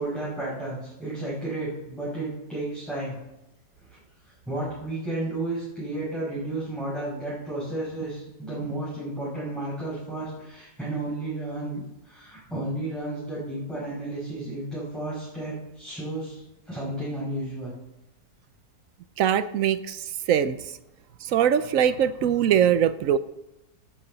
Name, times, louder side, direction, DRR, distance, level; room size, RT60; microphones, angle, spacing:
voice 1, 0.0-3.2 3.9-4.0 4.5-17.8, right 2 dB, ahead, -9 dB, 5.8 m, -32 dB
voice 2, 19.2-20.6 21.2-23.2, right 9 dB, 65° right, 13 dB, 0.9 m, -22 dB
16.5 x 12.0 x 4.0 m, 0.91 s
omnidirectional pair, 1.8 m